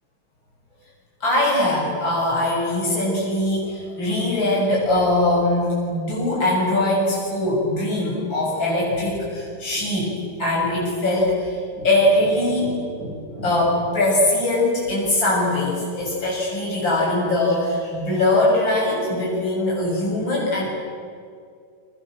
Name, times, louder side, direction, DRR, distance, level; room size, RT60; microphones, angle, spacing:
voice 1, 1.2-10.1 10.4-20.7, left 1 dB, 60° left, -5 dB, 7.6 m, -21 dB
29.5 x 25.5 x 7.7 m, 2.3 s
omnidirectional pair, 2.4 m